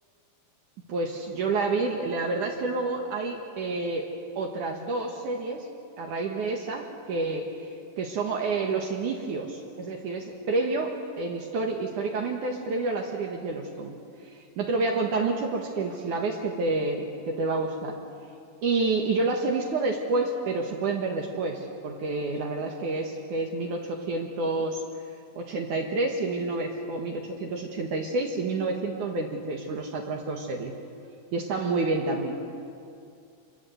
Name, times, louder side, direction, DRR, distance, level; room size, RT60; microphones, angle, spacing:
voice 1, 0.9-4.1 4.4-5.7 6.0-7.5 8.0-14.0 14.3-18.0 18.6-24.8 25.3-30.7 31.3-32.3, right 3 dB, 60° right, 1 dB, 3.0 m, -29 dB
26.5 x 22.5 x 8.0 m, 2.4 s
omnidirectional pair, 4.1 m